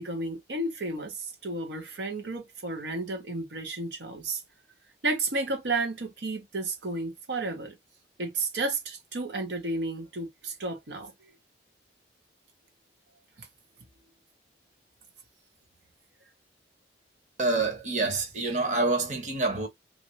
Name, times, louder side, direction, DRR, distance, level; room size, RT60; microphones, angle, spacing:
voice 1, 0.0-4.4 5.0-7.7 8.2-11.3 13.4-13.5, right 2 dB, 85° right, 0.9 m, -32 dB
voice 2, 17.4-19.7, right 3 dB, 40° right, 1.0 m, -27 dB
3.0 x 2.6 x 2.6 m
head